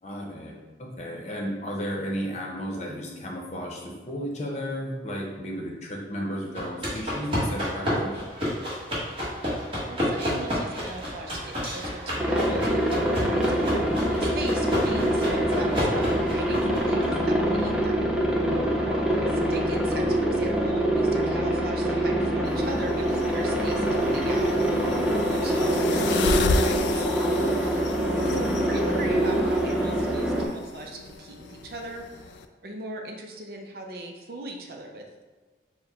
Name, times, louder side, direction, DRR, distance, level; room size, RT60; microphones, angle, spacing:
voice 1, 0.0-8.1 18.9-19.2, equal, 40° left, -2 dB, 0.8 m, -33 dB
sound 1, 6.6-17.0, equal, 30° right, 1.3 m, -30 dB
voice 2, 9.9-18.1 19.5-24.8 25.3-27.1 28.3-32.0 32.6-35.1, right 2 dB, 55° right, 2 dB, 0.6 m, -39 dB
Aircraft, 12.2-30.5, right 1 dB, 5° right, 0.4 m, -25 dB
sound 2, 22.4-32.4, left 4 dB, 75° left, 0.3 m, -33 dB
4.6 x 2.2 x 4.1 m, 1.4 s
head